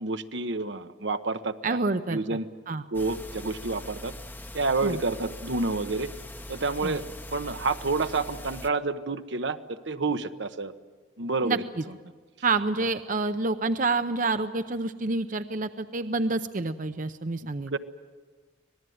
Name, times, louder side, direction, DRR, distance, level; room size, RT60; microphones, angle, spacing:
voice 1, 0.0-1.8 2.1-2.5 2.9-4.1 4.5-6.1 6.5-7.0 7.3-10.7 11.2-12.0 17.4-17.8, right 3 dB, 75° right, 9 dB, 1.0 m, -29 dB
voice 2, 1.6-2.4 2.7-2.8 4.8-5.0 6.8-7.0 11.4-11.8 12.4-17.7, right 3 dB, 45° right, 10 dB, 0.7 m, -28 dB
sound 1, 2.9-8.7, left 1 dB, 10° left, 0.8 m, -42 dB
25.5 x 19.0 x 9.4 m, 1.5 s
head